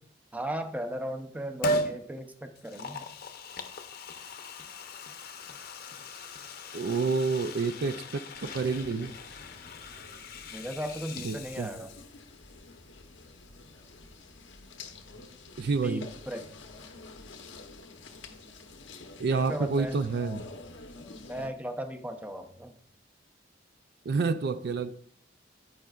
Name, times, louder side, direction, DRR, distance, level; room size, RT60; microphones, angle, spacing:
voice 1, 0.3-3.0 10.5-11.9 15.8-16.5 19.3-20.0 21.2-22.7, equal, 10° right, 0.6 m, -36 dB
Liquid, 1.6-2.0 2.6-12.2 12.5-12.6, equal, 55° left, 0.8 m, -37 dB
voice 2, 6.7-9.2 11.2-11.7 15.6-16.1 19.2-20.5 24.1-24.9, right 4 dB, 60° right, 0.4 m, -29 dB
sound 1, 8.3-21.5, left 3 dB, 90° left, 1.0 m, -48 dB
15.5 x 5.6 x 2.4 m
head